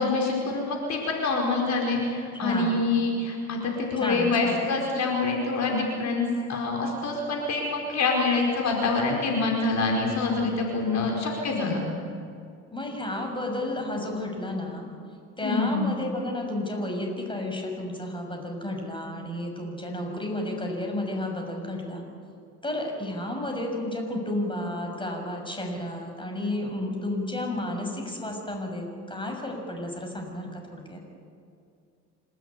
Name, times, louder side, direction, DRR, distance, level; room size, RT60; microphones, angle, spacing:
voice 1, 0.0-11.8 15.4-15.8, left 3 dB, 50° left, 0 dB, 4.8 m, -26 dB
voice 2, 2.4-2.9 4.0-4.7 12.7-14.9 15.4-22.0 22.6-31.0, left 1 dB, 15° left, 2 dB, 6.5 m, -32 dB
27.0 x 13.5 x 9.8 m, 2.4 s
supercardioid pair, 85°, 34 cm